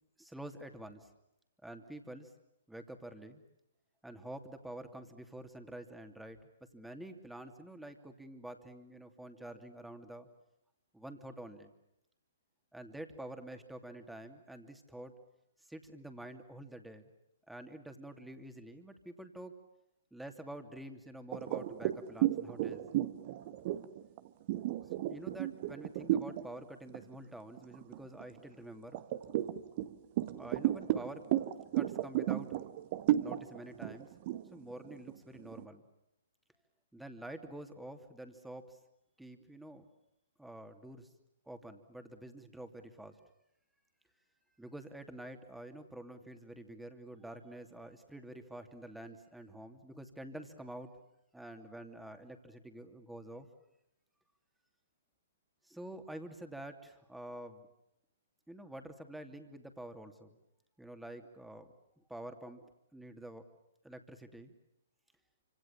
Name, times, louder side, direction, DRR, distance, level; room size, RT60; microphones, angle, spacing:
voice 1, 0.2-1.1 1.6-2.3 2.7-3.4 4.0-6.4 6.7-10.3 10.9-11.7 12.7-15.1 15.7-17.1 17.5-19.5 20.1-22.8 24.8-29.0 30.4-31.2 31.7-32.5 33.2-34.1 34.5-35.8 36.9-38.8 39.2-39.8 40.4-41.1 41.5-43.2 44.6-50.9 51.3-53.5 55.6-57.7 58.5-60.4 60.8-63.4 63.8-64.5, right 1 dB, 5° right, 6 dB, 2.9 m, -48 dB
sound 1, 21.3-26.4 26.9-27.1 27.6-28.4 28.9-35.6, right 13 dB, 40° right, 1.6 m, -33 dB
29.0 x 26.5 x 7.3 m, 0.85 s
figure-of-eight pair, 120°, 0 cm